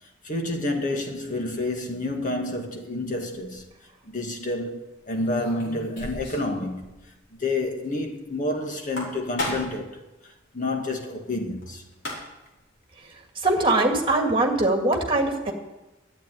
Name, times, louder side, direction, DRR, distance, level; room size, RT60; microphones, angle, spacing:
voice 1, 0.2-3.7 4.1-6.9 7.3-10.0 10.5-11.9, left 2 dB, 40° left, 2.0 m, -29 dB
sound 1, 3.4-3.6 5.1-6.5 6.8-6.9 7.2-7.3 8.7-9.9 11.6-11.7 11.9-12.5, left 1 dB, 70° left, 5.2 m, -34 dB
voice 2, 13.4-15.5, right 2 dB, 25° right, 2.2 m, -22 dB
12.0 x 9.0 x 9.4 m
head